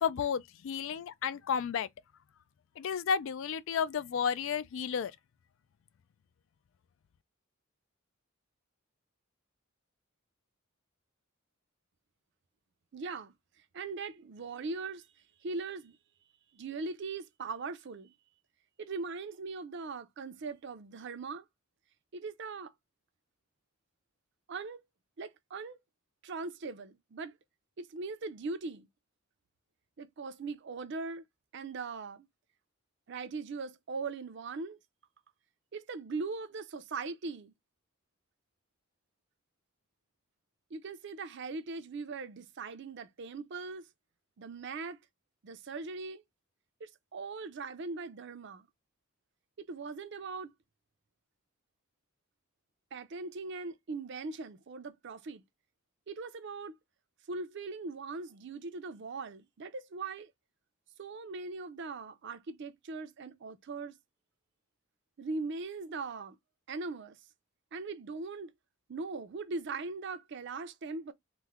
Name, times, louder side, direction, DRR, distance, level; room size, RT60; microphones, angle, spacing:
voice 1, 0.0-1.9 2.8-5.1, left 7 dB, 65° left, 0.3 m, -32 dB
voice 2, 12.9-13.3 13.7-15.0 15.4-16.0 16.5-18.1 18.8-21.4 22.1-22.7 24.5-24.8 25.2-25.8 26.2-27.3 27.8-28.9 30.0-31.3 31.5-32.3 33.1-34.8 35.7-37.5 40.7-43.9 44.4-45.0 45.4-46.2 46.8-48.7 49.6-50.5 52.9-55.4 56.1-56.8 57.3-60.3 61.0-63.9 65.2-66.4 66.7-67.2 67.7-68.5 68.9-71.1, right 4 dB, 55° right, 0.5 m, -40 dB
3.1 x 2.1 x 3.5 m
head